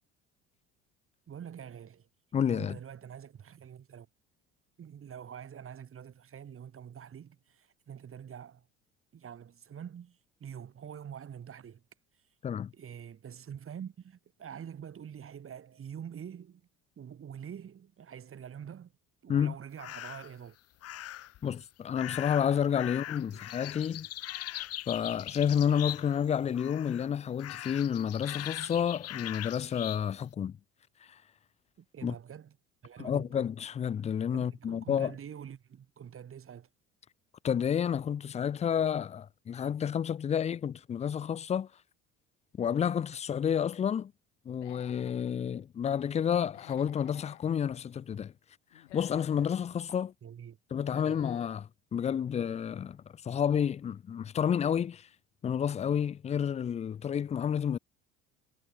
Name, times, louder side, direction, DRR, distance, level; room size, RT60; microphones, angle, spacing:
voice 1, 1.3-2.1 2.5-4.1 4.8-8.6 9.1-11.8 12.7-16.6 17.0-18.9 19.2-20.6 23.3-23.4 31.8-32.5 32.8-33.3 34.3-36.7 50.2-50.6 50.9-51.2, right 8 dB, 35° right, 5.6 m, -45 dB
voice 2, 2.3-2.8 12.4-12.7 19.3-19.5 21.4-24.1 24.9-30.6 32.0-32.2 33.0-35.2 37.4-41.7 42.6-44.1 44.5-48.3 48.9-50.1 50.7-55.1 55.4-57.8, left 8 dB, 20° left, 0.5 m, -30 dB
sound 1, 19.8-20.3 20.8-21.4 21.9-26.3 26.5-27.1 27.4-30.0, left 14 dB, 40° left, 1.3 m, -41 dB
Human voice / Animal, 44.5-45.3 46.4-47.4 48.7-49.6 50.7-51.6, left 16 dB, 65° left, 3.4 m, -52 dB
figure-of-eight pair, 60°, 38 cm